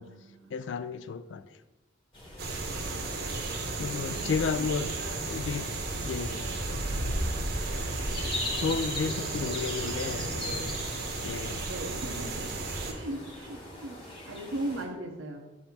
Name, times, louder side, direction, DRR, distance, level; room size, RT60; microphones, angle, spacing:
voice 1, 0.0-0.6 3.5-4.4 4.8-5.3 9.0-10.8 11.6-15.5, right 1 dB, 85° right, 0.8 m, -40 dB
voice 2, 0.5-1.4 3.8-4.9 5.2-5.7 6.0-6.8 8.6-10.7 11.2-11.6, left 5 dB, 65° left, 0.3 m, -33 dB
sound 1, 2.1-14.8, left 1 dB, 25° left, 1.2 m, -38 dB
sound 2, 2.4-12.9, right 3 dB, 55° right, 0.9 m, -35 dB
7.2 x 2.7 x 5.8 m
head